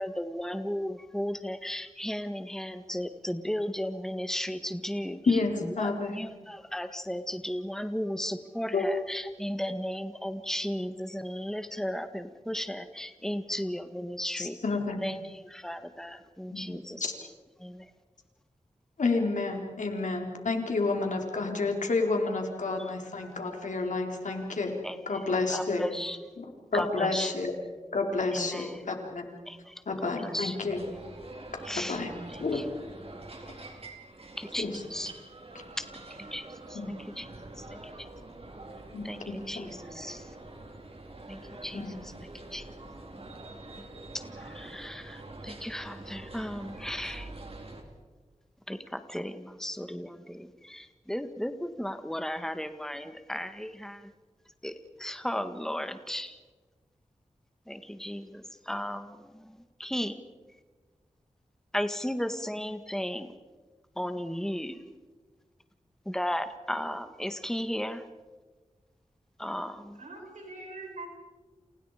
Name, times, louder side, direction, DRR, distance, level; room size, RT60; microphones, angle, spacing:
voice 1, 0.0-14.6 15.0-17.1 17.6-17.9 22.7-22.9 23.2-23.6 24.3-24.4 24.8-25.2 25.5-26.2 26.7-27.3 28.3-28.8 29.5-30.6 30.9-31.0 31.6-32.0 32.3-32.6 34.4-35.1 35.8-35.9 36.2-37.3 37.6-38.1 39.0-40.3 41.3-42.1 42.5-42.7 43.1-43.2 43.5-43.9 44.1-47.3 48.7-54.1 54.6-56.4 57.7-60.2 61.7-63.4 64.0-64.8 66.1-68.1 69.4-70.0, equal, 5° left, 9 dB, 1.7 m, -35 dB
voice 2, 5.3-6.1 8.7-8.8 14.4-15.0 16.5-16.7 17.0-17.1 19.0-24.8 25.1-25.9 26.7-27.5 27.9-29.3 29.9-30.8 31.9-32.1 32.4-32.6 33.5-33.6 34.6-34.7 36.7-36.9 38.9-39.7 41.7-42.0, left 3 dB, 85° left, 2 dB, 4.2 m, -30 dB
sound 1, 30.7-47.8, right 2 dB, 50° right, 4.4 m, -45 dB
voice 3, 70.0-71.1, right 2 dB, 85° right, 1 dB, 6.9 m, -42 dB
29.5 x 29.0 x 5.1 m, 1.3 s
cardioid pair, 50°, 12 cm